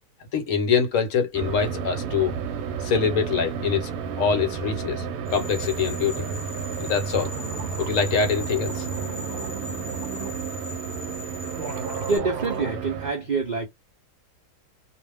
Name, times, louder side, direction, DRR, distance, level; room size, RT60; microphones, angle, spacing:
voice 1, 0.3-2.3 2.8-3.9 4.2-5.0 5.3-6.3 6.8-7.3 7.8-8.9, left 6 dB, 65° left, 1.1 m, -24 dB
sound 1, 1.3-13.1, right 6 dB, 75° right, 1.0 m, -32 dB
sound 2, 5.3-12.2, left 3 dB, 45° left, 0.3 m, -40 dB
sound 3, 6.9-7.0 7.2-10.4 11.1-11.2 11.5-12.7, right 5 dB, 55° right, 0.8 m, -36 dB
voice 2, 12.1-13.7, right 4 dB, 90° right, 0.4 m, -26 dB
2.5 x 2.1 x 3.3 m
omnidirectional pair, 1.6 m